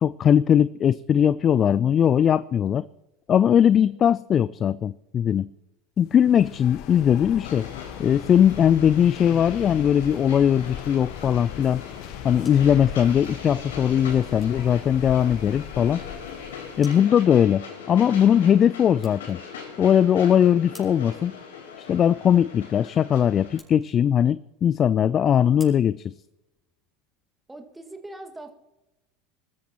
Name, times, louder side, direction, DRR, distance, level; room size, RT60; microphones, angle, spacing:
voice 1, 0.0-2.8 3.3-5.5 6.0-7.7 8.0-11.8 12.2-16.0 16.8-19.4 19.8-21.3 21.9-26.1, left 9 dB, 35° left, 18 dB, 0.4 m, -20 dB
sound 1, 6.1-16.9, left 10 dB, 55° left, 1.1 m, -38 dB
Train, 7.4-23.6, left 6 dB, 75° left, 3.8 m, -41 dB
sound 2, 18.6-26.9, left 1 dB, 10° left, 5.6 m, -57 dB
voice 2, 27.5-28.5, right 2 dB, 10° right, 5 dB, 1.9 m, -41 dB
25.0 x 14.0 x 3.0 m, 0.98 s
figure-of-eight pair, 80°, 0 cm